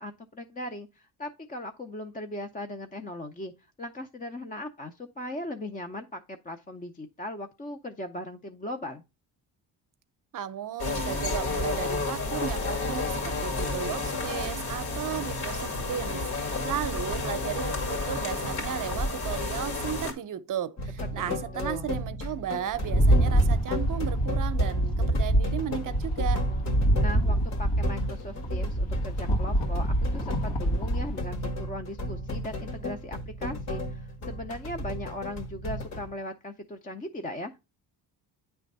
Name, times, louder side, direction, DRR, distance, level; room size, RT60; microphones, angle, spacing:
voice 1, 0.0-3.5 3.8-9.0 21.0-21.9 27.0-37.6, left 1 dB, 20° left, 0.5 m, -38 dB
voice 2, 10.3-26.4, right 10 dB, 50° right, 0.7 m, -35 dB
sound 1, 10.8-20.1, left 3 dB, 60° left, 2.3 m, -31 dB
sound 2, 20.8-36.1, left 1 dB, 40° left, 1.2 m, -35 dB
Rattle, 22.7-31.2, right 1 dB, 90° left, 2.1 m, -25 dB
9.2 x 3.4 x 5.3 m
cardioid pair, 120°, 42 cm